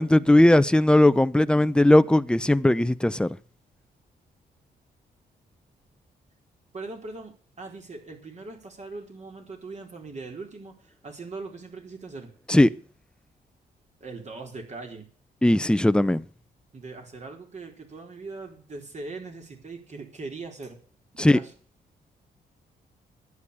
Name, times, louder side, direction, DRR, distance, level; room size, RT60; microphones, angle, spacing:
voice 1, 0.0-3.4 12.5-12.7 15.4-16.2 21.2-21.4, left 1 dB, 5° left, 0.7 m, -18 dB
voice 2, 6.7-12.3 14.0-15.1 16.7-20.8 21.1-21.5, right 3 dB, 45° right, 4.1 m, -40 dB
11.0 x 9.5 x 8.4 m
cardioid pair, 85°, 17 cm